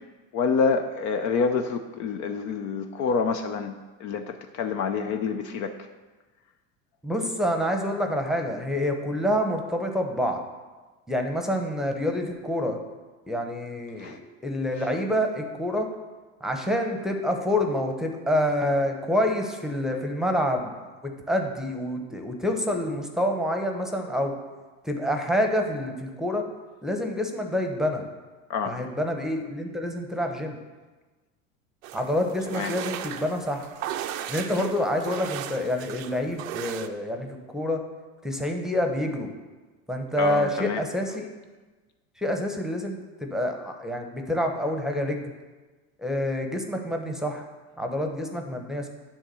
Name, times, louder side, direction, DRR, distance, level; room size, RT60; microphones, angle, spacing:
voice 1, 0.3-5.7 14.0-14.2 28.5-28.8 32.5-32.7 34.5-34.7 40.2-40.8, left 5 dB, 45° left, 7 dB, 0.6 m, -27 dB
voice 2, 7.0-10.4 11.1-12.8 13.3-15.9 16.4-20.7 21.0-24.3 24.8-26.4 26.8-28.0 28.6-30.6 31.9-33.7 34.3-37.8 38.2-39.3 39.9-41.3 42.2-45.3 46.0-47.5 47.8-48.9, left 1 dB, ahead, 4 dB, 0.9 m, -27 dB
sound 1, 31.8-36.9, right 11 dB, 85° right, 0.7 m, -36 dB
9.8 x 3.6 x 6.8 m, 1.3 s
supercardioid pair, 100°, 39 cm